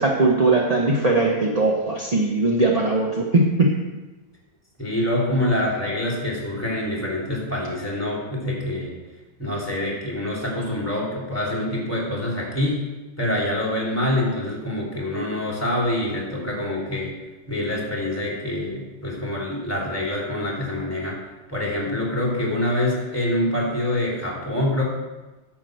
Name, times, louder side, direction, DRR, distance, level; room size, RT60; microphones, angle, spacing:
voice 1, 0.0-3.8, right 2 dB, 30° right, -1 dB, 0.7 m, -20 dB
voice 2, 4.8-8.9 9.4-12.8 13.2-17.1 17.5-21.2 21.5-24.8, left 1 dB, 10° left, -3 dB, 3.2 m, -25 dB
10.5 x 6.1 x 7.8 m, 1.1 s
omnidirectional pair, 2.0 m